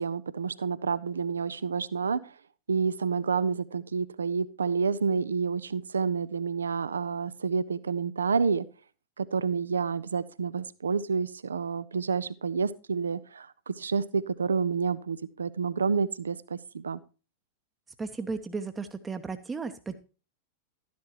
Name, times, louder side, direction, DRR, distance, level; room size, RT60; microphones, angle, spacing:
voice 1, 0.0-2.3 2.7-8.7 9.2-17.0, right 5 dB, 70° right, 18 dB, 0.5 m, -29 dB
voice 2, 18.0-19.9, right 4 dB, 15° right, 8 dB, 0.8 m, -35 dB
12.5 x 10.5 x 3.0 m, 0.33 s
figure-of-eight pair, 90°, 0 cm